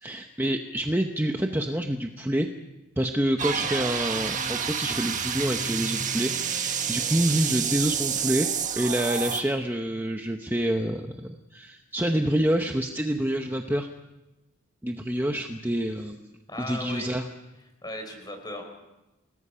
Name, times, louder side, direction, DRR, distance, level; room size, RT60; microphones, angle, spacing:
voice 1, 0.0-2.5 3.0-8.5 8.8-13.9 14.8-16.3 16.6-17.2, right 1 dB, 10° right, 4 dB, 0.9 m, -27 dB
sound 1, 3.4-9.4, right 7 dB, 35° right, 1.6 m, -29 dB
voice 2, 16.5-17.1 17.8-18.6, left 1 dB, 20° left, 5 dB, 4.6 m, -36 dB
29.5 x 19.0 x 5.7 m, 1.0 s
head